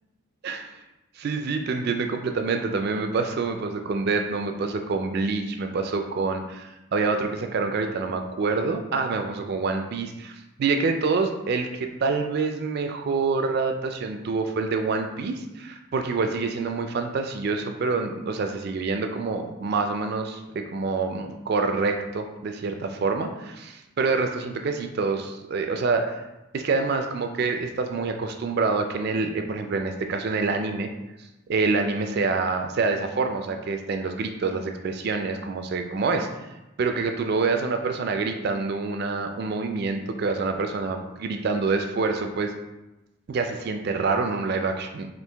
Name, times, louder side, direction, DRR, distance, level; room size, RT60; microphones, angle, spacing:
voice 1, 1.2-26.2 26.5-30.9 31.5-36.3 36.8-42.5 43.3-45.1, right 4 dB, 45° right, 6 dB, 0.3 m, -26 dB
4.5 x 2.6 x 3.3 m, 0.98 s
head